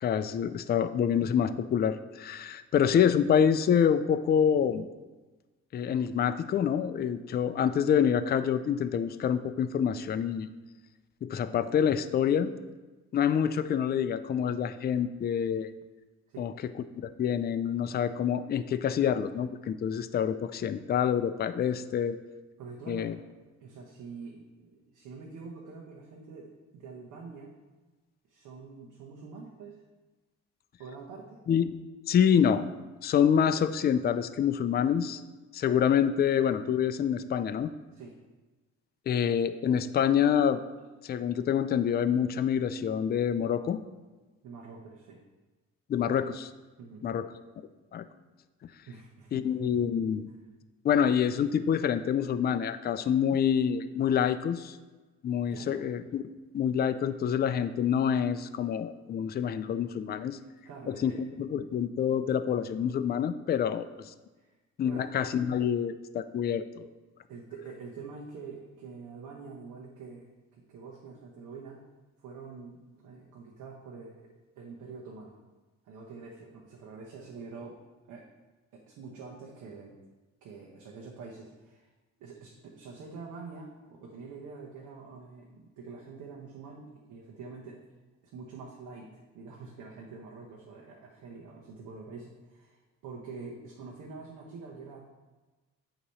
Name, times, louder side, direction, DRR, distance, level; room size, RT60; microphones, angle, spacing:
voice 1, 0.0-4.9 5.7-10.5 11.2-12.5 13.1-15.7 16.4-16.5 17.0-22.2 22.9-23.2 31.5-31.7 32.1-32.6 33.0-35.2 35.5-37.7 39.1-40.6 41.0-43.8 45.9-46.5 47.0-47.3 47.9-48.0 49.3-50.3 50.8-54.8 55.2-60.4 60.9-64.1 64.8-66.8, left 8 dB, 35° left, 11 dB, 0.4 m, -27 dB
voice 2, 22.6-23.1 23.6-27.6 28.3-29.8 30.8-31.4 37.9-38.2 44.4-45.2 46.8-47.1 48.9-49.5 50.3-50.4 55.5-55.9 60.3-61.2 64.4-64.5 64.8-65.1 67.3-70.3 70.5-71.8 72.2-75.4 75.8-77.8 78.1-78.2 78.7-80.0 80.4-81.9 82.2-87.8 88.3-95.1, right 4 dB, 90° right, -2 dB, 0.9 m, -46 dB
8.4 x 3.0 x 5.5 m, 1.2 s
cardioid pair, 90°, 30 cm